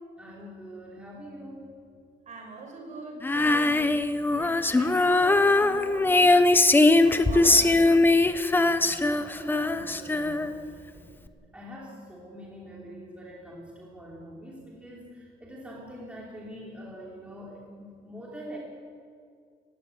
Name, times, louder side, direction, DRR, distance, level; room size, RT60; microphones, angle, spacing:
voice 1, 0.2-1.6 7.3-7.8 8.6-18.6, equal, 5° right, -4 dB, 3.1 m, -44 dB
voice 2, 2.3-3.9 4.3-6.4 6.9-7.9, right 3 dB, 40° right, 2 dB, 5.8 m, -41 dB
Female singing, 3.2-10.7, left 2 dB, 10° left, 0.7 m, -21 dB
17.5 x 16.0 x 9.6 m, 2.1 s
cardioid pair, 160°, 18 cm